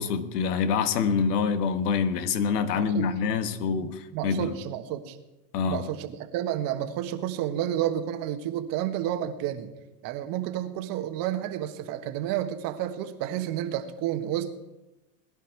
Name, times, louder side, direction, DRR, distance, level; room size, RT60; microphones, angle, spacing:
voice 1, 0.0-4.5 5.5-5.8, left 6 dB, 65° left, 1.4 m, -26 dB
voice 2, 2.7-3.1 3.8-5.2 5.7-9.7 10.0-14.5, right 11 dB, 45° right, 1.5 m, -30 dB
20.5 x 11.0 x 4.6 m
hypercardioid pair, 120°, 50 cm